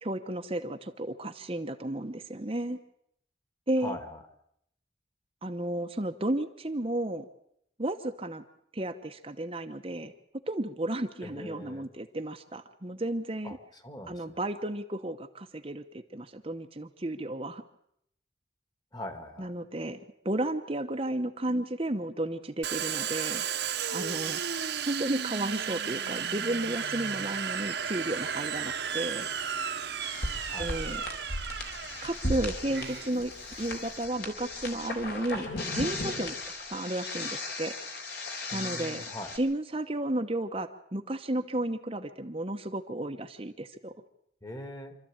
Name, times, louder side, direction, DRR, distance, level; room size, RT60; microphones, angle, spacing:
voice 1, 0.0-2.8 3.7-4.0 5.4-7.3 7.8-8.4 8.7-10.1 10.5-13.6 14.1-17.6 19.4-23.4 23.9-24.4 24.9-29.3 30.6-31.0 32.0-33.3 33.6-36.4 36.7-37.7 38.5-39.1 39.3-43.9, right 1 dB, 30° right, 5 dB, 1.0 m, -33 dB
voice 2, 3.8-4.2 11.2-11.9 13.4-13.6 13.8-14.4 18.9-19.5 30.5-30.7 38.5-39.4 44.4-45.0, left 1 dB, 20° left, 7 dB, 2.1 m, -41 dB
Domestic sounds home sounds, 22.6-34.0, right 7 dB, 65° right, 1.2 m, -34 dB
sound 1, 30.0-39.4, left 2 dB, 60° left, 4.0 m, -36 dB
26.5 x 13.5 x 8.8 m, 0.74 s
head